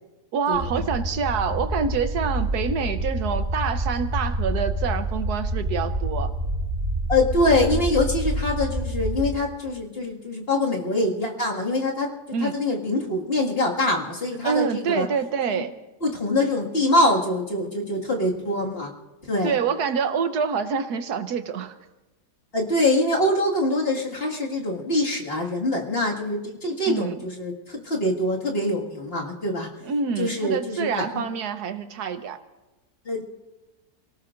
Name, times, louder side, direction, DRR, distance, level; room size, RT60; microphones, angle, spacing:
voice 1, 0.3-6.3 12.3-12.6 14.4-15.7 19.4-21.7 26.9-27.2 29.8-32.4, right 6 dB, 80° right, 9 dB, 1.4 m, -26 dB
sound 1, 0.5-9.3, right 1 dB, 60° right, 3.2 m, -27 dB
voice 2, 7.1-12.1 12.4-15.1 15.5-15.6 16.0-18.9 19.2-19.6 22.5-29.7 30.2-31.0 33.1-33.2, left 1 dB, 35° left, -2 dB, 2.1 m, -24 dB
29.5 x 18.5 x 2.5 m, 1.1 s
omnidirectional pair, 1.7 m